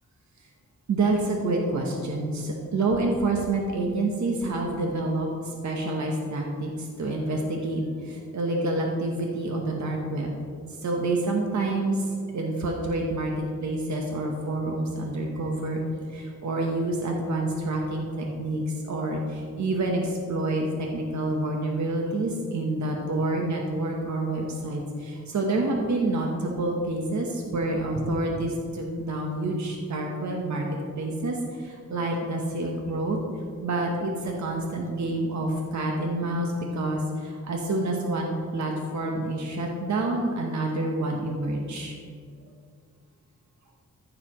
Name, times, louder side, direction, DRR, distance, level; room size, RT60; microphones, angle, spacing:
voice 1, 0.9-10.4 10.8-15.8 16.1-30.7 30.9-33.2 33.6-41.9, right 2 dB, 70° right, 0 dB, 1.1 m, -28 dB
14.5 x 6.6 x 3.1 m, 2.2 s
wide cardioid pair, 140°, 30 cm